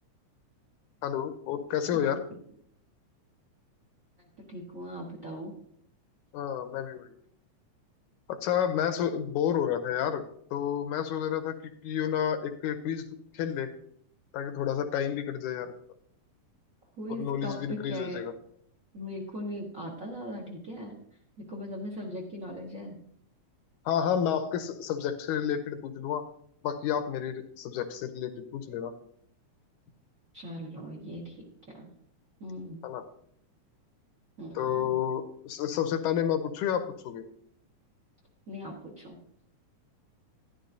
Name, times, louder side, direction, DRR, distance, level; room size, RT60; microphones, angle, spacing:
voice 1, 1.0-2.2 6.3-7.2 8.3-10.2 10.5-11.6 11.8-13.1 13.3-13.7 14.3-15.7 17.1-18.3 23.9-26.3 26.6-29.0 32.8-33.1 34.6-37.3, left 9 dB, 80° left, 9 dB, 2.1 m, -30 dB
voice 2, 1.9-2.4 4.5-5.5 17.0-18.2 18.9-21.0 21.4-23.0 30.3-31.4 31.7-31.9 32.4-32.8 34.4-34.9 38.5-39.2, equal, 50° right, 0 dB, 0.9 m, -39 dB
11.5 x 11.0 x 2.6 m, 0.67 s
omnidirectional pair, 3.6 m